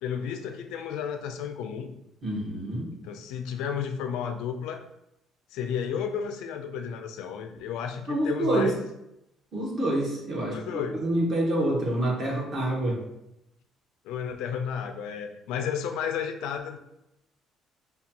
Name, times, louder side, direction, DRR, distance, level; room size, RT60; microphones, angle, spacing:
voice 1, 0.0-1.9 3.0-4.9 5.5-8.8 10.5-11.0 14.0-16.8, left 7 dB, 90° left, 6 dB, 0.4 m, -32 dB
voice 2, 2.2-2.9 8.1-8.7 9.5-13.0, right 1 dB, 35° right, -2 dB, 1.1 m, -27 dB
5.2 x 2.3 x 2.8 m, 0.84 s
cardioid pair, 155°, 0 cm